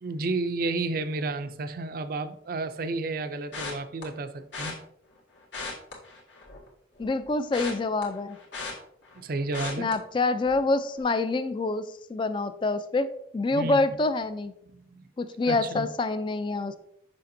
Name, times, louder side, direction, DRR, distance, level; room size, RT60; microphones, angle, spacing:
voice 1, 0.0-4.8 9.1-9.9 13.5-13.8 14.7-15.0 15.4-15.8, right 3 dB, 50° right, 10 dB, 0.4 m, -31 dB
sound 1, 3.5-4.0 4.5-4.7 5.4-6.7 7.0-9.2 9.5-9.9 10.4-10.7 11.0-11.1, left 3 dB, 75° left, 1.8 m, -37 dB
voice 2, 7.0-8.4 9.8-11.8 12.1-14.5 15.2-16.8, left 3 dB, 25° left, 12 dB, 0.3 m, -26 dB
6.7 x 5.9 x 2.6 m, 0.73 s
head